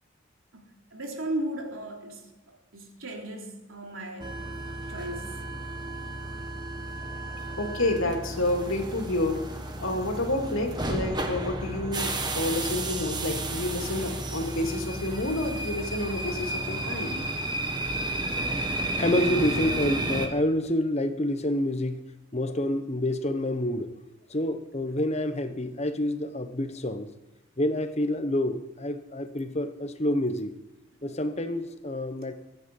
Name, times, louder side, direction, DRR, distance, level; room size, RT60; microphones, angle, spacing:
voice 1, 0.9-4.4 4.8-5.4, right 1 dB, 80° right, 1 dB, 3.3 m, -36 dB
sound 1, 4.2-20.3, right 2 dB, 20° right, 1.4 m, -32 dB
voice 2, 7.6-17.2, left 1 dB, 80° left, 2 dB, 2.9 m, -29 dB
voice 3, 19.0-22.0 22.3-23.9 24.3-27.1 27.6-30.6 31.0-32.3, left 1 dB, 30° left, 9 dB, 1.0 m, -28 dB
23.0 x 9.4 x 5.4 m, 1.1 s
head